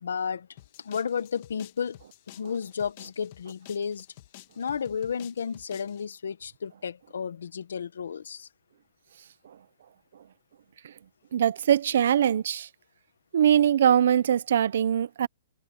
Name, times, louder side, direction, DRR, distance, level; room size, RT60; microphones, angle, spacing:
voice 1, 0.0-0.5 0.8-2.0 2.3-4.1 4.6-8.5, left 6 dB, 85° left, 1.3 m, -32 dB
sound 1, 0.6-6.0, left 16 dB, 30° left, 2.0 m, -51 dB
voice 2, 11.3-12.7 13.3-15.3, right 9 dB, 50° right, 0.6 m, -22 dB
hypercardioid pair, 180°, 0 cm